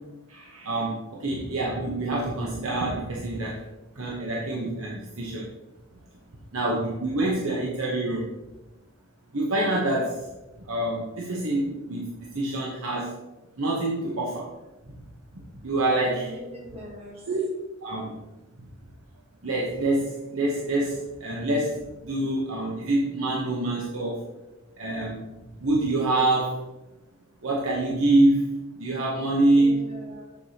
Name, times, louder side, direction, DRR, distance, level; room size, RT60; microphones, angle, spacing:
voice 1, 0.3-3.6 3.9-5.5 6.5-8.3 9.3-10.3 10.6-13.1 13.6-14.5 14.8-14.9 15.3-16.3 17.3-17.4 17.8-18.2 19.4-24.2 24.8-25.2 25.6-26.6 27.4-29.8, right 2 dB, 70° right, -4 dB, 1.0 m, -26 dB
voice 2, 16.1-17.3 29.5-30.4, equal, 25° right, -1 dB, 1.0 m, -42 dB
7.2 x 6.8 x 2.9 m, 1.0 s
head